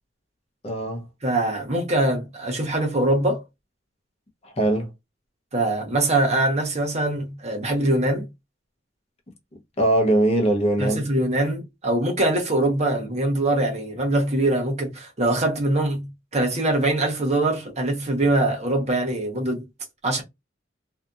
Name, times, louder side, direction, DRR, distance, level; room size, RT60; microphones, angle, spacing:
voice 1, 0.6-1.0 4.4-4.9 9.8-11.0, right 1 dB, 30° left, 0.7 m, -21 dB
voice 2, 1.2-3.4 5.5-8.3 10.8-19.7 20.0-20.2, right 1 dB, 35° right, 0.9 m, -23 dB
2.7 x 2.4 x 2.2 m
head